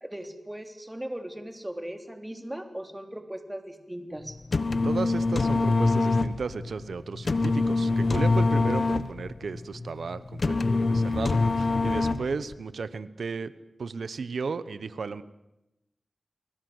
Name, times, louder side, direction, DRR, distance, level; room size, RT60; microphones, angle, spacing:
voice 1, 0.0-4.4 10.5-10.9, right 1 dB, 15° right, 6 dB, 3.5 m, -38 dB
sound 1, 4.3-12.5, left 3 dB, 60° left, 1.2 m, -25 dB
voice 2, 4.8-10.5 10.9-13.5 13.8-15.2, right 5 dB, 85° right, 14 dB, 1.1 m, -34 dB
30.0 x 21.0 x 8.1 m, 0.92 s
wide cardioid pair, 65°, 0 cm